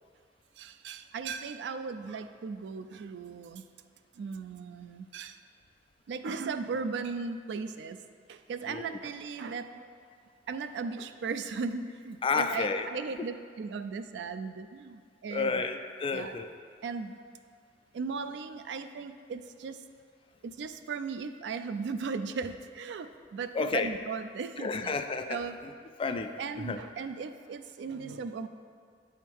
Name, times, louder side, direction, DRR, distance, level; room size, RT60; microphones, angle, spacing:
voice 1, 0.6-3.6 4.2-5.4 6.1-8.0 8.3-9.9 10.5-15.5 16.1-16.3 16.8-17.1 17.9-19.8 20.4-25.0 25.3-25.5 26.4-28.5, right 5 dB, 70° right, 10 dB, 0.3 m, -37 dB
voice 2, 8.7-9.0 12.2-12.9 13.2-13.3 15.3-16.5 23.5-23.9 24.6-25.7 26.0-26.8, left 4 dB, 30° left, 7 dB, 0.3 m, -31 dB
8.4 x 3.6 x 4.5 m, 2.1 s
head